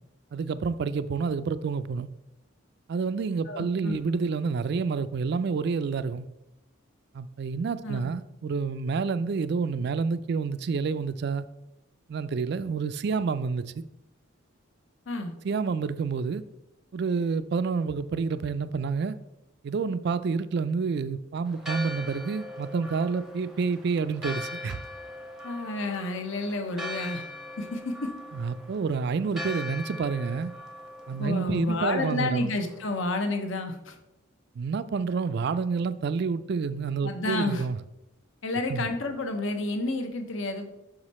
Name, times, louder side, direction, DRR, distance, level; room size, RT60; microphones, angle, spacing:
voice 1, 0.3-2.1 2.9-6.2 7.1-11.4 12.1-13.8 15.4-16.4 16.9-19.2 19.6-24.8 28.3-30.5 31.1-32.5 34.6-37.8 38.7-38.9, right 5 dB, 50° right, 0.3 m, -28 dB
voice 2, 3.5-4.0 7.8-8.1 15.1-15.3 25.4-27.2 27.6-28.1 31.1-34.0 37.0-37.6 38.4-40.7, left 2 dB, 65° left, 0.8 m, -30 dB
Church bell, 21.5-33.0, left 1 dB, ahead, 0.6 m, -41 dB
6.1 x 4.9 x 4.2 m
head